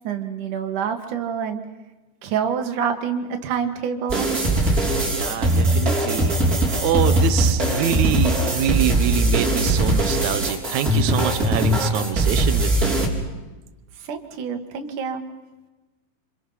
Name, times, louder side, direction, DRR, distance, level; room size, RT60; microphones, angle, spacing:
voice 1, 0.0-1.6 2.2-4.3 14.0-15.2, right 7 dB, 55° right, 5 dB, 2.8 m, -27 dB
sound 1, 4.1-13.1, right 1 dB, 20° right, 4.1 m, -20 dB
voice 2, 5.1-6.3 6.8-13.0, right 10 dB, 90° right, 9 dB, 1.6 m, -25 dB
27.0 x 27.0 x 5.8 m, 1.1 s
omnidirectional pair, 4.8 m